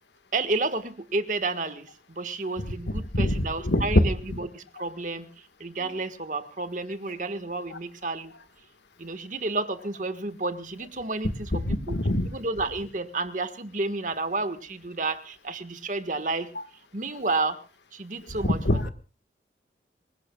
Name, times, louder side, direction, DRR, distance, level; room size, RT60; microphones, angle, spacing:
voice 1, 0.3-5.3 5.6-8.3 9.0-11.5 11.9-12.0 12.3-16.5 16.9-17.6 17.9-18.6, right 3 dB, 45° right, 10 dB, 1.6 m, -31 dB
voice 2, 3.1-4.0 11.7-12.3 18.4-18.9, left 1 dB, 85° left, 9 dB, 1.7 m, -23 dB
26.5 x 17.5 x 2.4 m, 0.37 s
head